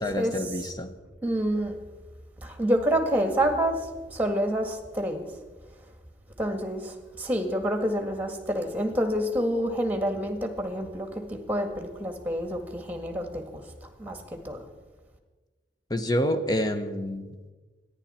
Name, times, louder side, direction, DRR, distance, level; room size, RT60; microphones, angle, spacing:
voice 1, 0.0-0.9 15.9-17.3, equal, 20° left, 8 dB, 1.0 m, -28 dB
voice 2, 1.2-1.7 2.4-3.8 4.1-5.3 6.4-13.4 14.0-14.2 14.4-14.6, equal, 10° right, 5 dB, 1.8 m, -27 dB
24.5 x 10.5 x 4.4 m, 1.3 s
head